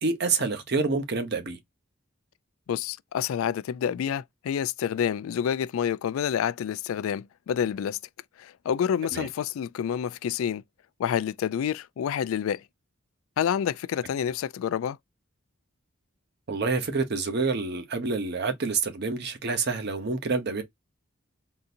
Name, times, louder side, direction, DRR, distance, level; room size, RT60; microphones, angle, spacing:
voice 1, 0.0-1.6 9.1-9.3 16.5-20.6, right 4 dB, 55° right, 0.9 m, -27 dB
voice 2, 2.7-8.0 8.4-10.6 11.0-12.6 13.4-15.0, left 8 dB, 85° left, 0.3 m, -28 dB
3.8 x 2.7 x 2.5 m
head